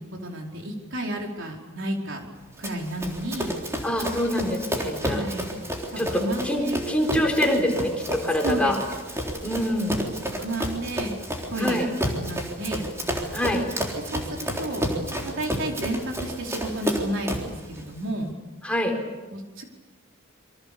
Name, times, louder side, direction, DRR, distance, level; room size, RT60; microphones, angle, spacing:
voice 1, 0.0-2.2 2.6-3.5 5.0-5.6 5.9-6.8 8.4-8.7 9.8-10.0 10.3-11.2 11.5-11.9 12.2-12.9 13.9-14.8 15.2-18.3 19.3-19.6, right 1 dB, 60° right, 1 dB, 4.7 m, -31 dB
Run, 2.6-17.6, equal, 15° right, 3.7 m, -31 dB
voice 2, 3.8-5.3 6.0-8.8 9.4-9.9 11.6-11.9 13.3-13.6 18.6-18.9, left 1 dB, 5° left, 1 dB, 4.3 m, -25 dB
28.0 x 24.5 x 7.0 m, 1.1 s
head